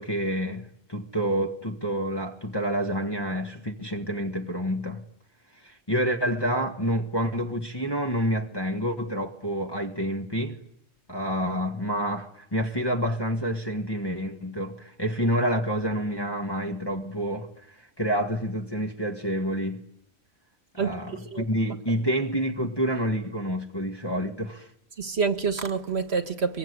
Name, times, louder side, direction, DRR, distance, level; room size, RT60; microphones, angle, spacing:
voice 1, 0.0-5.0 5.6-10.6 11.1-19.9 20.7-24.7, equal, 20° left, 1.5 m, -28 dB
voice 2, 20.8-21.4 25.0-26.6, right 5 dB, 55° right, 1.5 m, -27 dB
25.0 x 22.5 x 9.6 m
omnidirectional pair, 1.3 m